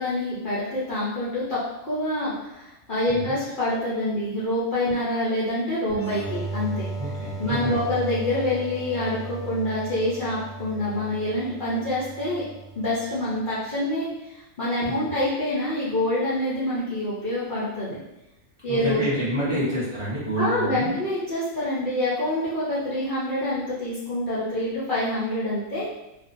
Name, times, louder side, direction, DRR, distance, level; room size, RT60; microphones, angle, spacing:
voice 1, 0.0-1.6 1.9-6.9 7.4-12.4 12.8-18.0 18.6-19.0 19.4-19.6 20.4-25.9, left 1 dB, 60° left, -10 dB, 0.5 m, -26 dB
sound 1, 5.9-13.3, right 4 dB, 85° left, 1.1 m, -35 dB
voice 2, 7.0-7.8 14.8-15.1 18.7-20.9, equal, 30° right, -11 dB, 0.6 m, -28 dB
2.4 x 2.1 x 2.5 m, 0.93 s
omnidirectional pair, 1.5 m